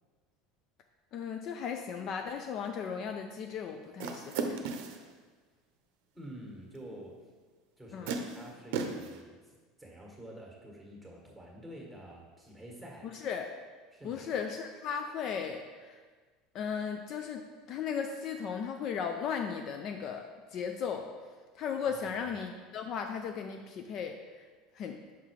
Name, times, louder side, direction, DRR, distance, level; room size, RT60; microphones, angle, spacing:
voice 1, 1.1-4.7 7.9-8.1 13.1-13.5 14.0-16.0 16.5-21.1 21.5-24.5 24.7-25.0, left 7 dB, 50° left, 5 dB, 0.4 m, -36 dB
sound 1, 4.0-5.1 6.9-7.0 8.1-9.2, right 4 dB, 75° right, 0.6 m, -35 dB
voice 2, 6.1-7.2 7.8-13.1 13.9-14.4 21.9-22.2, right 1 dB, ahead, -2 dB, 1.5 m, -48 dB
5.7 x 3.9 x 4.7 m, 1.4 s
supercardioid pair, 120°, 0 cm